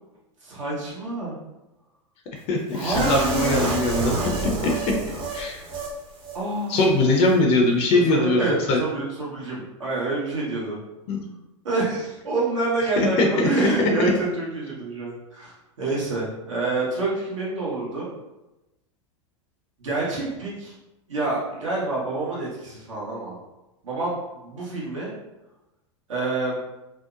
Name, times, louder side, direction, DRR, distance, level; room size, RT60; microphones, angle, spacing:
voice 1, 0.4-1.4 2.7-3.8 6.3-6.8 7.9-10.8 11.6-18.1 19.8-20.7 21.1-23.4 23.8-25.1 26.1-26.6, right 3 dB, 75° right, -6 dB, 1.0 m, -27 dB
voice 2, 2.5-4.1 5.3-5.6 6.7-8.4 8.7-8.8 11.1-11.2 13.0-14.1, left 2 dB, 40° left, 1 dB, 0.5 m, -21 dB
sound 1, 2.7-5.9 6.2-6.4 6.7-6.9, right 2 dB, 35° right, 0.7 m, -28 dB
2.7 x 2.0 x 2.4 m, 0.99 s
hypercardioid pair, 90°, 16 cm